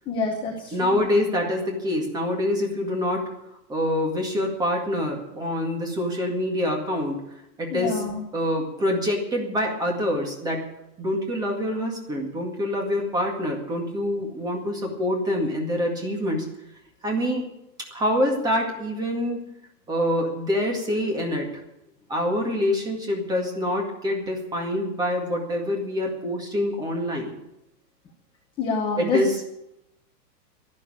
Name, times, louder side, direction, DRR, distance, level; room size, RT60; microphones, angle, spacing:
voice 1, 0.1-1.0 7.7-8.2 28.6-29.2, left 4 dB, 10° left, 0 dB, 1.0 m, -27 dB
voice 2, 0.7-3.3 3.7-7.3 7.6-8.0 8.3-10.6 11.0-16.5 17.0-17.5 17.9-19.4 19.9-21.5 22.1-27.4 29.0-29.5, left 1 dB, 10° right, 1 dB, 2.0 m, -26 dB
12.0 x 11.5 x 8.8 m, 0.84 s
hypercardioid pair, 165°, 50 cm